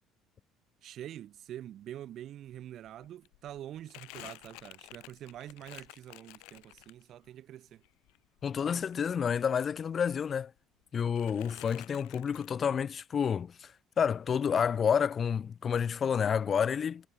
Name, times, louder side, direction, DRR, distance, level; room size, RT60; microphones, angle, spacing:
voice 1, 0.8-7.8, right 12 dB, 50° right, 4.2 m, -45 dB
Crumpling crinkling, 2.5-2.6 2.8-7.3 7.7-9.8 10.1-10.8 11.1-12.5, left 26 dB, 85° left, 1.2 m, -52 dB
voice 2, 8.4-10.5 10.9-13.7 14.0-17.1, left 7 dB, 35° left, 0.6 m, -29 dB
cardioid pair, 140°, 0 cm